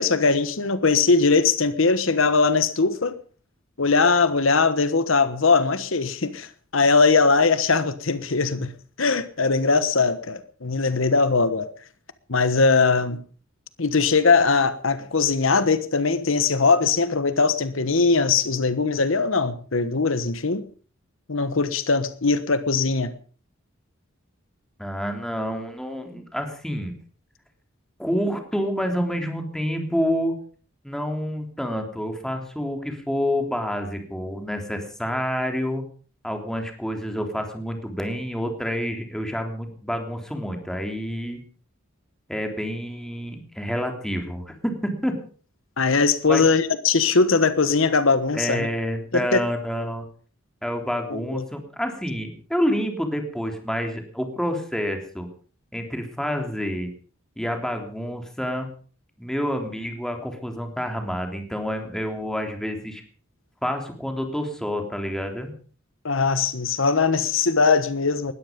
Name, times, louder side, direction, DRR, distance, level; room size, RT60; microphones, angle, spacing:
voice 1, 0.0-3.1 3.8-8.7 9.0-11.7 12.3-13.2 13.8-20.7 21.3-23.1 45.8-48.7 49.1-49.4 51.1-51.4 66.0-68.3, left 4 dB, 75° left, 13 dB, 1.2 m, -20 dB
voice 2, 24.8-26.9 28.0-30.4 30.8-35.8 36.2-41.4 42.3-45.1 46.3-46.4 48.4-50.1 50.6-55.3 55.7-56.9 57.4-58.7 59.2-63.0 63.6-65.5, equal, 5° left, 4 dB, 3.4 m, -28 dB
20.0 x 13.5 x 5.2 m, 0.42 s
head